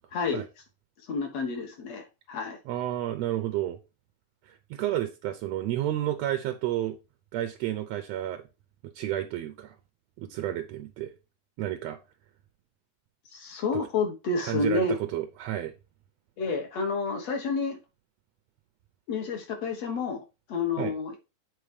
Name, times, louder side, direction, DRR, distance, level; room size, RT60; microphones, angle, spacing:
voice 1, 0.1-0.5 1.1-2.6 13.3-15.0 16.4-17.8 19.1-20.2 20.5-21.1, left 4 dB, 60° left, 2.2 m, -29 dB
voice 2, 2.7-3.8 4.4-7.0 7.3-8.4 8.8-9.7 10.2-11.1 11.6-12.0 13.7-13.8 14.4-15.7 20.8-20.9, right 13 dB, 80° right, 1.6 m, -31 dB
8.3 x 4.1 x 4.9 m
omnidirectional pair, 3.6 m